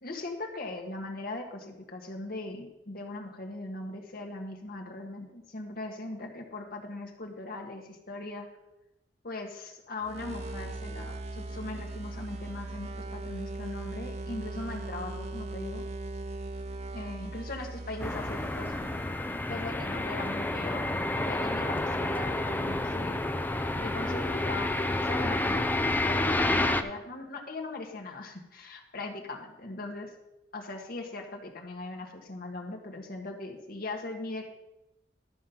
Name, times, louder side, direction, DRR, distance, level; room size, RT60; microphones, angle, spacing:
voice 1, 0.0-8.5 9.2-15.8 16.9-18.7 19.5-20.8 21.2-23.2 23.8-25.7 26.0-30.1 30.5-34.4, left 2 dB, 55° left, 1 dB, 1.6 m, -39 dB
sound 1, 10.0-19.5, right 2 dB, 40° right, 0.7 m, -39 dB
sound 2, 18.0-26.8, left 2 dB, 10° left, 0.5 m, -29 dB
12.5 x 5.4 x 5.8 m, 0.91 s
head